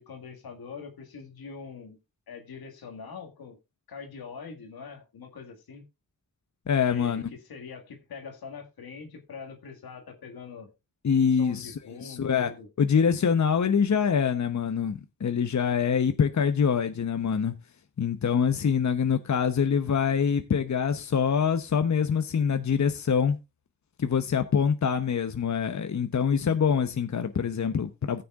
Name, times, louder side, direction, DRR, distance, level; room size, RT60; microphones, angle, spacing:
voice 1, 0.0-2.0 2.3-3.6 3.9-5.8 6.8-7.2 7.5-10.7 11.4-12.7, left 5 dB, 85° left, 2.0 m, -43 dB
voice 2, 6.7-7.3 11.0-12.5 12.8-17.5 18.0-23.4 24.0-28.2, left 7 dB, 50° left, 0.9 m, -25 dB
16.0 x 6.9 x 2.4 m
cardioid pair, 50°, 36 cm